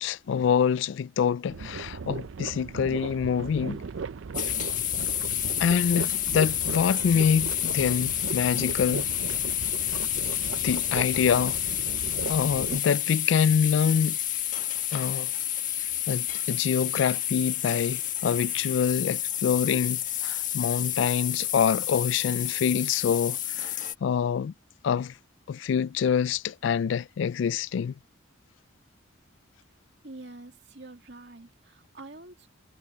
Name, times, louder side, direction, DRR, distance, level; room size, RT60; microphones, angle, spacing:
voice 1, 0.0-3.8 5.6-9.1 10.6-11.6 12.3-14.2 14.9-15.3 16.1-23.7 24.0-24.5 24.8-25.1 25.5-27.9, left 7 dB, 65° left, 0.3 m, -26 dB
sound 1, 1.5-12.8, right 5 dB, 75° right, 0.5 m, -37 dB
sound 2, 4.3-23.9, left 12 dB, 40° left, 1.6 m, -30 dB
voice 2, 30.0-32.5, right 2 dB, 60° right, 2.4 m, -46 dB
head